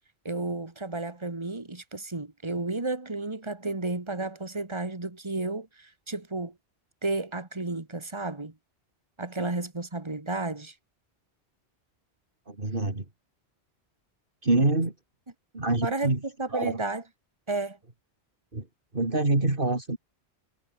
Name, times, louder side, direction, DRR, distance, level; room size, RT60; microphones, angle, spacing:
voice 1, 0.2-6.5 7.0-8.5 9.2-10.7 15.8-17.0 17.5-17.8, right 2 dB, 25° right, 2.2 m, -32 dB
voice 2, 12.5-13.0 14.4-14.9 15.5-16.2 16.5-16.8 18.5-18.6 18.9-20.0, right 2 dB, 50° right, 3.6 m, -25 dB
omnidirectional pair, 1.1 m